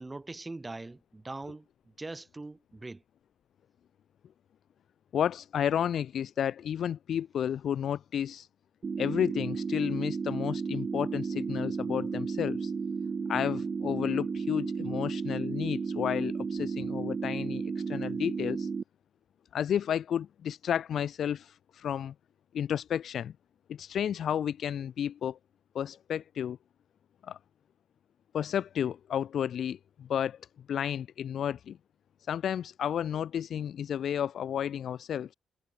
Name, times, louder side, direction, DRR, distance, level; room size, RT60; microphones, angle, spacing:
voice 1, 0.0-1.7 2.0-3.0, right 2 dB, 20° right, 7.3 m, -41 dB
voice 2, 5.1-8.5 9.0-12.7 13.3-18.7 19.5-22.1 22.5-23.3 23.7-25.4 25.7-26.6 27.2-27.4 28.3-30.4 30.7-31.8 32.3-35.3, left 9 dB, 65° left, 0.6 m, -32 dB
sound 1, 8.8-18.8, right 5 dB, 40° right, 1.9 m, -33 dB
cardioid pair, 90°, 0 cm